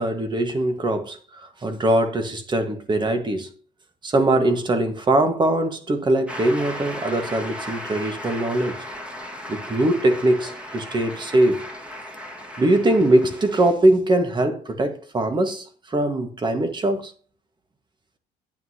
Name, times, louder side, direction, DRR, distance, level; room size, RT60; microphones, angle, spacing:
voice 1, 0.0-3.5 4.0-8.8 9.5-11.7 12.6-17.1, right 1 dB, 25° right, 1.6 m, -21 dB
Shout / Cheering / Applause, 6.3-13.7, left 1 dB, 5° right, 1.8 m, -36 dB
9.4 x 9.2 x 2.9 m
cardioid pair, 110°, 17 cm